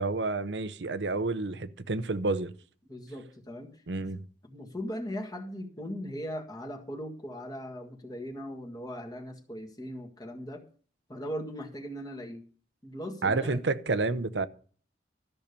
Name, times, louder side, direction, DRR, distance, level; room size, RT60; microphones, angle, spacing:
voice 1, 0.0-2.5 3.9-4.2 13.2-14.5, right 3 dB, 80° right, 0.8 m, -29 dB
voice 2, 2.9-3.8 4.4-10.6 11.1-12.4 12.8-13.6, equal, 20° left, 1.7 m, -39 dB
13.5 x 6.6 x 6.8 m
head